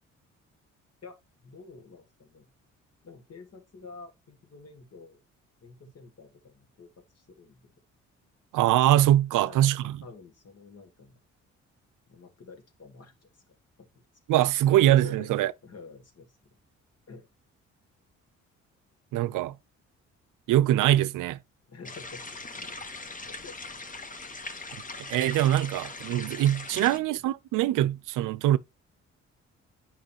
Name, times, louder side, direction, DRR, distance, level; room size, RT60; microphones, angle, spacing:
voice 1, 1.0-2.5 3.0-5.2 5.6-7.7 9.3-11.2 12.1-13.4 13.8-13.9 15.0-15.3 15.6-16.5 17.1-17.3 21.7-22.8 23.3-23.6 26.6-27.1, left 4 dB, 50° left, 2.3 m, -49 dB
voice 2, 8.5-10.0 14.3-15.5 19.1-19.5 20.5-21.4 25.1-28.6, right 13 dB, 80° right, 0.5 m, -23 dB
sound 1, 21.8-27.0, left 3 dB, 25° left, 1.2 m, -40 dB
8.7 x 5.6 x 2.9 m
supercardioid pair, 65°, 31 cm